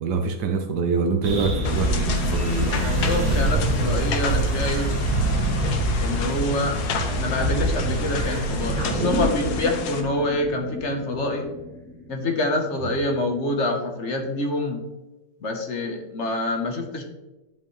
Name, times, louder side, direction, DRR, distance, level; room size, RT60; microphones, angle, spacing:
voice 1, 0.0-2.9, right 4 dB, 85° right, 4 dB, 1.4 m, -25 dB
sound 1, 1.2-9.1, right 1 dB, 60° right, 1.6 m, -24 dB
sound 2, 1.6-10.0, left 5 dB, 75° left, 1.4 m, -33 dB
voice 2, 2.8-4.9 6.0-6.8 7.1-11.5 12.1-14.8 15.4-17.0, left 2 dB, 50° left, 4 dB, 1.2 m, -26 dB
sound 3, 8.7-13.4 13.7-13.8, equal, ahead, 2.7 m, -31 dB
11.0 x 5.5 x 3.2 m, 1.1 s
omnidirectional pair, 1.7 m